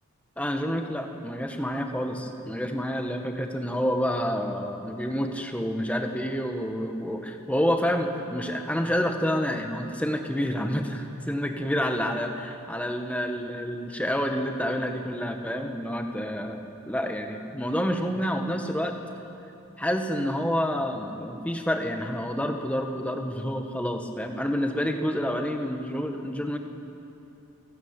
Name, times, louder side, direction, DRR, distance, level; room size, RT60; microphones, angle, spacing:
voice 1, 0.4-12.3 12.7-19.0 19.8-26.6, equal, 5° left, 4 dB, 1.4 m, -28 dB
27.5 x 13.0 x 9.0 m, 2.8 s
head